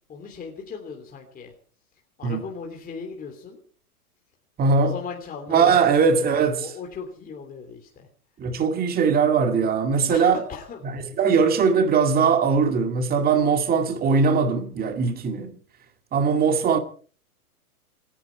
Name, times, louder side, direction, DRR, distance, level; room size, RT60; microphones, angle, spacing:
voice 1, 0.1-1.5 2.2-3.6 4.8-8.1 10.1-10.8, left 5 dB, 20° left, 3.0 m, -37 dB
voice 2, 4.6-4.9 5.5-6.7 8.4-10.4 11.2-15.5 16.1-16.8, right 5 dB, 20° right, 2.1 m, -20 dB
27.5 x 10.5 x 4.6 m
hypercardioid pair, 125°, 45 cm